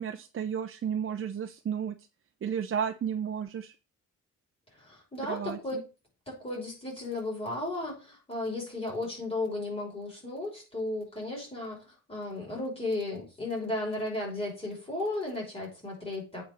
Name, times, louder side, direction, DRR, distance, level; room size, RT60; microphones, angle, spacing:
voice 1, 0.0-2.0 2.4-3.7 5.3-5.6, right 8 dB, 45° right, 6 dB, 0.8 m, -32 dB
voice 2, 4.7-5.8 6.3-16.4, left 2 dB, 20° left, -3 dB, 5.9 m, -35 dB
8.5 x 4.5 x 6.4 m, 0.32 s
cardioid pair, 90°, 30 cm